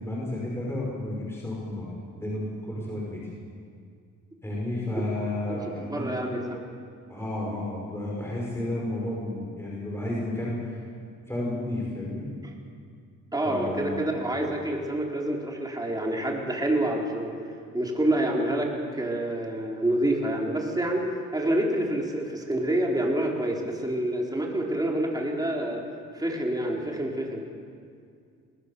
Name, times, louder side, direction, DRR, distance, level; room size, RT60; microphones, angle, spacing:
voice 1, 0.0-3.2 4.4-6.4 7.1-10.8 11.3-12.3 13.4-14.1, left 1 dB, 10° left, -4 dB, 5.9 m, -32 dB
voice 2, 5.5-6.6 13.3-17.3 17.7-21.1 21.3-25.8 26.1-27.5, right 1 dB, 15° right, -1 dB, 4.3 m, -27 dB
22.0 x 18.5 x 7.0 m, 2.2 s
cardioid pair, 90°, 30 cm